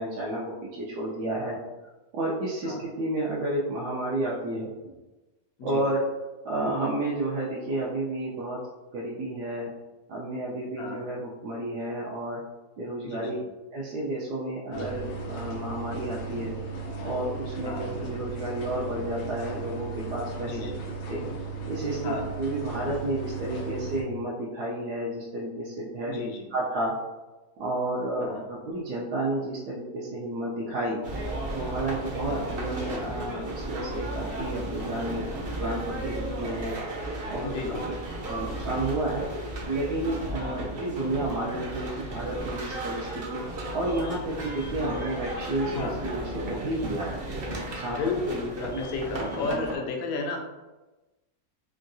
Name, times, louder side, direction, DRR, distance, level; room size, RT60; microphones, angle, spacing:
voice 1, 0.0-1.6 2.1-4.9 5.6-6.0 6.4-8.6 8.9-9.7 10.1-12.4 12.8-13.4 13.7-16.5 17.0-20.7 21.1-21.2 21.7-22.1 22.4-26.2 26.5-26.9 27.6-31.0 31.5-35.2 35.6-36.8 37.3-37.6 38.2-39.3 39.7-43.4 43.7-47.2 47.7-48.0 48.7-48.8 49.1-49.6, right 1 dB, 90° right, -6 dB, 1.1 m, -31 dB
voice 2, 13.0-13.4 14.7-14.9 17.6-17.9 20.4-20.8 22.0-22.3 26.1-26.5 28.2-28.4 32.3-32.5 37.4-38.0 40.4-40.6 45.7-46.0 47.8-50.4, left 3 dB, 70° left, 2 dB, 0.9 m, -33 dB
sound 1, 14.7-24.0, right 4 dB, 90° left, 1.2 m, -36 dB
sound 2, 31.0-49.8, right 1 dB, 55° right, 0.6 m, -34 dB
3.6 x 2.3 x 2.5 m, 1.1 s
omnidirectional pair, 1.6 m